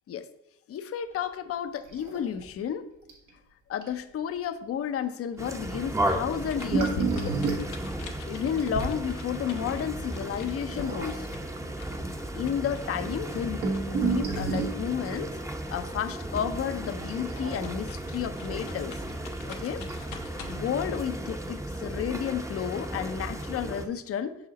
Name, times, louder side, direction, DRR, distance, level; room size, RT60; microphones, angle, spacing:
voice 1, 0.7-2.9 3.7-7.3 8.2-11.3 12.3-15.3 15.7-18.9 19.5-19.8 20.5-24.4, left 8 dB, 50° left, 10 dB, 0.6 m, -32 dB
sound 1, 1.8-2.4 2.7-2.8 3.1-3.3 3.8-3.9 6.4-9.0 10.6-11.3 12.1-12.2 12.4-12.5 13.1-14.8 17.0-17.9 19.2-19.3 19.9-20.0, right 4 dB, 75° right, 1.5 m, -30 dB
sound 2, 5.4-23.9, right 1 dB, 10° right, 0.7 m, -35 dB
sound 3, 6.3-15.8 16.1-20.7, left 4 dB, 80° left, 0.9 m, -45 dB
5.6 x 5.0 x 4.0 m, 0.87 s
cardioid pair, 90°, 30 cm